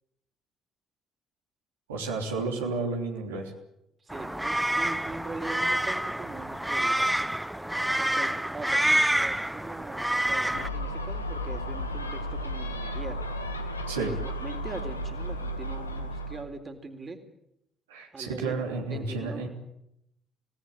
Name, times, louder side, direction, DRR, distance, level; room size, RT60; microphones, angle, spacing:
voice 1, 1.9-3.5 13.9-14.1 17.9-19.5, right 3 dB, 80° right, 0 dB, 3.2 m, -31 dB
voice 2, 4.0-7.0 8.0-13.2 14.0-17.2 18.1-18.6 18.9-19.5, right 3 dB, 30° right, 6 dB, 3.8 m, -41 dB
sound 1, 4.1-10.7, right 1 dB, 5° right, 1.0 m, -27 dB
Gull seagull, 10.5-16.4, equal, 90° left, 1.6 m, -34 dB
27.0 x 18.0 x 8.7 m, 0.81 s
figure-of-eight pair, 50°, 0 cm